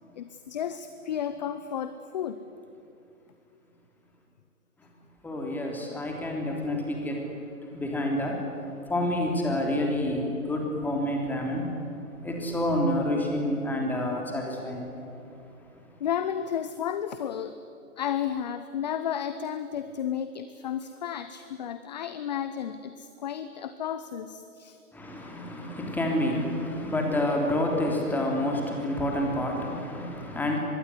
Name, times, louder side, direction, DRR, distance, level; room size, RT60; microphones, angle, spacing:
voice 1, 0.2-2.4 16.0-17.5 18.0-24.8, left 9 dB, 30° left, 11 dB, 0.8 m, -32 dB
voice 2, 5.2-7.3 7.7-11.7 12.2-15.0 24.9-30.6, left 1 dB, 5° left, 0 dB, 3.3 m, -28 dB
24.5 x 22.0 x 9.7 m, 2.8 s
figure-of-eight pair, 140°, 44 cm